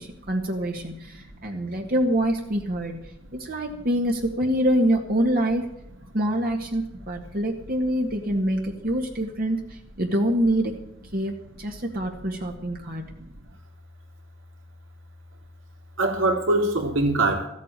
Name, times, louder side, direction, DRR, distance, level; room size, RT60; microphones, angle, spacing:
voice 1, 0.0-5.7 6.1-10.8 11.1-13.0, equal, 50° right, 1 dB, 1.8 m, -25 dB
voice 2, 12.8-13.3 16.0-17.5, right 2 dB, 80° right, 2 dB, 3.6 m, -24 dB
15.0 x 8.3 x 9.0 m, 0.83 s
head